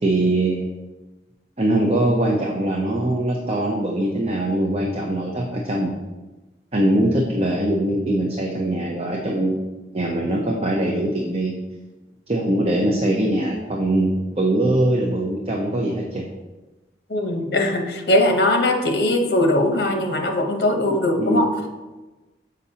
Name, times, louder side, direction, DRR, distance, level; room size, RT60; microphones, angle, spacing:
voice 1, 0.0-0.6 1.6-5.9 6.7-9.5 9.9-11.5 12.3-16.2 21.2-21.5, right 1 dB, 35° right, -1 dB, 0.6 m, -22 dB
voice 2, 17.1-21.5, left 1 dB, 60° left, 3 dB, 0.8 m, -20 dB
6.8 x 5.1 x 2.8 m, 1.1 s
head